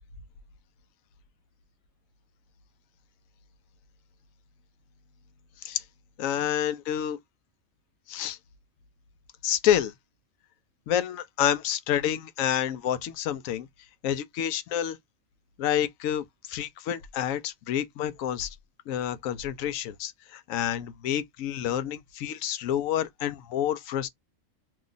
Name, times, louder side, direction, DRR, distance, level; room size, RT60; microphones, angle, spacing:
voice 1, 6.2-7.2 8.1-8.4 9.4-9.9 10.9-13.7 14.0-15.0 15.6-18.5 18.9-24.1, left 10 dB, 80° left, 1.0 m, -28 dB
2.9 x 2.3 x 3.8 m
omnidirectional pair, 1.4 m